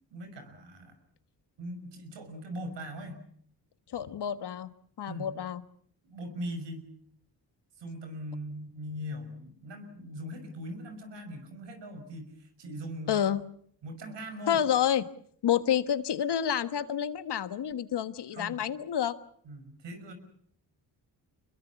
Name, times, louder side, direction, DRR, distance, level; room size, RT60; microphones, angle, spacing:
voice 1, 0.1-1.0 1.6-3.2 5.0-5.3 6.0-6.9 7.8-13.2 13.8-14.6 18.3-18.6 19.4-20.1, equal, 85° right, 7 dB, 6.1 m, -40 dB
voice 2, 3.9-4.7 5.0-5.6 13.1-13.4 14.5-15.1 15.4-19.2, left 9 dB, 70° left, 13 dB, 1.5 m, -29 dB
26.0 x 21.5 x 7.1 m, 0.64 s
cardioid pair, 65°, 42 cm